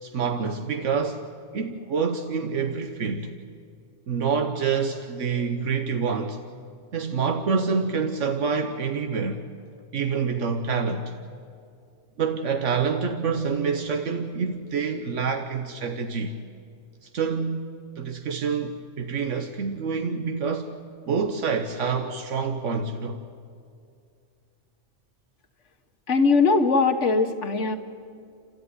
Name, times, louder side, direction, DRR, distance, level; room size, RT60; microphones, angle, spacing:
voice 1, 0.0-1.2 1.5-3.3 4.1-6.4 6.9-9.4 9.9-11.1 12.2-16.3 17.0-17.7 18.0-20.8 21.1-23.2, right 5 dB, 85° right, 1.4 m, -27 dB
voice 2, 26.1-27.8, left 4 dB, 80° left, 1.9 m, -20 dB
29.5 x 14.0 x 9.7 m
omnidirectional pair, 1.2 m